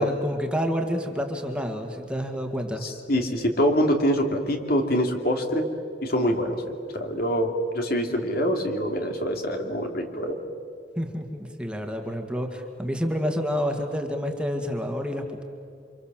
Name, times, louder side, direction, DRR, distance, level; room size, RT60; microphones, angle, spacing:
voice 1, 0.0-2.8 11.0-15.4, equal, 5° right, 3 dB, 2.1 m, -29 dB
voice 2, 2.8-5.7 6.0-10.4, equal, 55° left, 3 dB, 3.0 m, -25 dB
29.0 x 26.0 x 7.6 m, 2.4 s
head